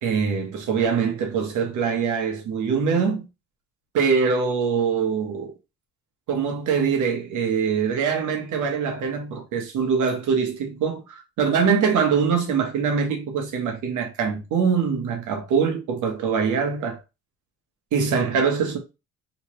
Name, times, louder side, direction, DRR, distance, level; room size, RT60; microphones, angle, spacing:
voice 1, 0.0-3.3 3.9-5.5 6.3-17.0 17.9-18.8, right 6 dB, 80° right, 1.1 m, -23 dB
3.2 x 3.0 x 3.1 m
cardioid pair, 90°, 30 cm